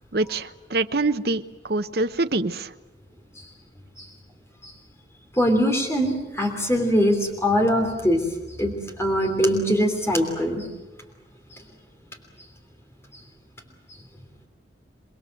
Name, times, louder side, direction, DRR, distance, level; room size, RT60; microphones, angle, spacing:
voice 1, 0.1-2.7, right 2 dB, 55° right, 9 dB, 0.9 m, -25 dB
voice 2, 5.4-8.2 8.6-10.7, equal, 15° left, 3 dB, 3.1 m, -22 dB
28.0 x 21.5 x 7.8 m, 1.1 s
head